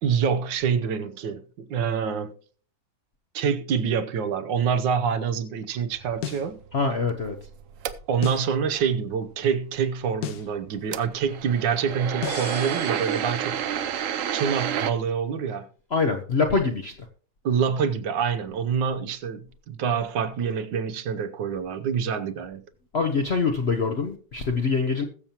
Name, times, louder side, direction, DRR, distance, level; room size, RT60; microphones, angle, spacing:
voice 1, 0.0-2.3 3.3-6.6 8.1-13.6 14.3-15.7 17.4-22.6, right 7 dB, 70° right, 1.4 m, -26 dB
sound 1, 5.9-8.4 10.7-14.9, right 9 dB, 90° right, 0.7 m, -30 dB
sound 2, 6.2-6.5 8.2-8.5 10.2-10.5 12.2-12.5, left 9 dB, 70° left, 1.3 m, -33 dB
voice 2, 6.7-7.4 15.9-16.9 22.9-25.0, left 4 dB, 50° left, 0.7 m, -24 dB
sound 3, 12.3-14.1, left 1 dB, 15° left, 1.4 m, -40 dB
21.0 x 7.1 x 2.9 m
omnidirectional pair, 2.2 m